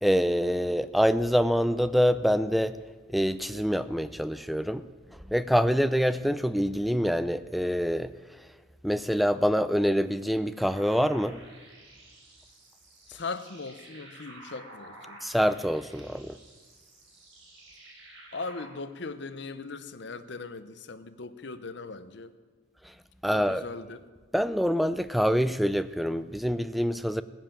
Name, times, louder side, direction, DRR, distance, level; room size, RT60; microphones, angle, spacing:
voice 1, 0.0-2.8 3.1-4.8 5.3-8.1 8.8-11.4 15.2-16.4 23.2-23.6 24.3-27.2, equal, ahead, 13 dB, 0.3 m, -25 dB
sound 1, 10.6-18.7, right 1 dB, 70° right, 4.1 m, -51 dB
voice 2, 13.1-15.2 18.3-22.3 23.3-24.0, left 3 dB, 60° left, 11 dB, 0.8 m, -39 dB
17.0 x 7.3 x 8.9 m, 1.4 s
head